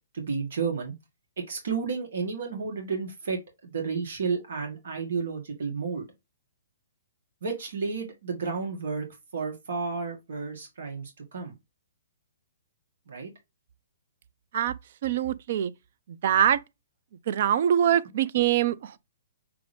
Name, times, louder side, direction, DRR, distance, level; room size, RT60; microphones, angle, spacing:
voice 1, 0.1-0.9 1.5-6.1 7.4-9.1 9.3-11.5 13.1-13.3, right 5 dB, 70° right, 1.5 m, -32 dB
voice 2, 15.0-15.7 16.1-16.6 17.3-19.0, right 10 dB, 55° right, 0.4 m, -24 dB
5.7 x 2.6 x 3.4 m
hypercardioid pair, 150°, 0 cm